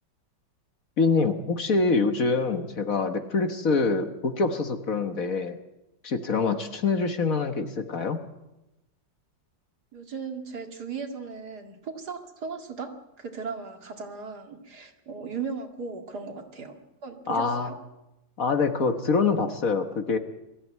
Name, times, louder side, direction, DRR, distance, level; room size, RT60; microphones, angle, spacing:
voice 1, 1.0-5.6 6.0-8.2 17.3-17.7 18.4-20.2, left 4 dB, 50° left, 7 dB, 1.6 m, -25 dB
voice 2, 9.9-17.8, right 5 dB, 60° right, 4 dB, 2.7 m, -37 dB
22.5 x 14.5 x 9.4 m, 0.96 s
omnidirectional pair, 1.9 m